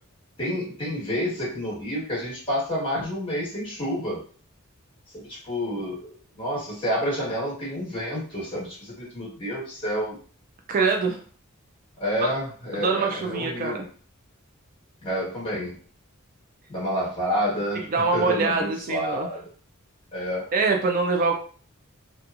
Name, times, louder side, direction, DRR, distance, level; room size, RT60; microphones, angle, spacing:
voice 1, 0.4-4.2 5.1-10.1 12.0-13.8 15.0-15.7 16.7-17.9 18.1-19.4 20.1-20.5, equal, 25° left, -7 dB, 1.5 m, -29 dB
voice 2, 10.7-11.2 12.2-12.3 12.7-13.8 17.9-19.3 20.5-21.4, right 4 dB, 40° right, 3 dB, 0.3 m, -24 dB
2.8 x 2.3 x 2.5 m, 0.43 s
head